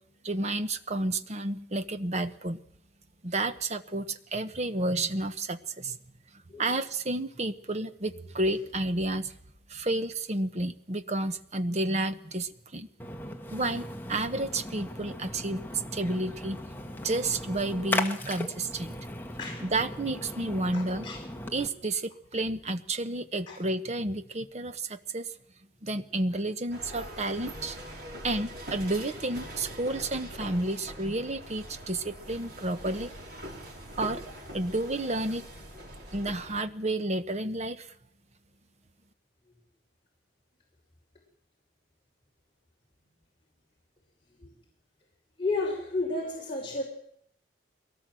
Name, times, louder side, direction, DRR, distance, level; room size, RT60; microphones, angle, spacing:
voice 1, 0.2-2.6 3.2-6.0 6.6-9.3 9.7-12.9 13.5-16.6 17.0-18.9 19.6-21.1 21.5-25.3 25.8-27.8 28.2-33.1 34.0-34.2 34.5-35.4 36.1-37.9, right 2 dB, 40° right, 10 dB, 1.1 m, -31 dB
Splash splatter, 13.0-21.7, left 1 dB, 10° left, 1.6 m, -37 dB
voice 2, 20.7-21.2 23.5-23.6 45.4-46.8, left 3 dB, 30° left, -3 dB, 5.2 m, -32 dB
sound 1, 26.7-36.6, equal, 60° right, 5.8 m, -43 dB
22.5 x 18.0 x 7.8 m, 0.69 s
head